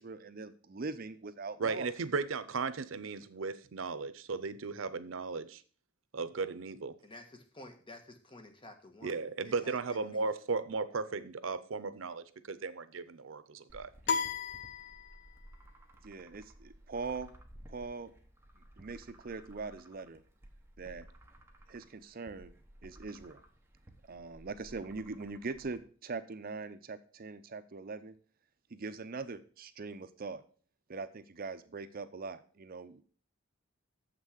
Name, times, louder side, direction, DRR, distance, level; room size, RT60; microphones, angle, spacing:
voice 1, 0.0-1.9 16.0-17.3 17.7-18.1 18.6-20.2 20.8-21.1 21.7-22.5 22.8-23.4 24.1-28.1 28.7-30.4 30.9-33.0, right 4 dB, 50° right, 11 dB, 0.6 m, -42 dB
voice 2, 1.6-5.6 6.1-7.0 9.0-13.9, right 4 dB, 85° right, 14 dB, 0.6 m, -36 dB
voice 3, 7.0-10.3, left 1 dB, 25° left, 5 dB, 1.4 m, -52 dB
sound 1, 13.7-25.8, right 1 dB, 10° right, 1.1 m, -56 dB
sound 2, 14.1-15.5, left 5 dB, 60° left, 0.6 m, -35 dB
7.4 x 6.0 x 6.4 m, 0.42 s
head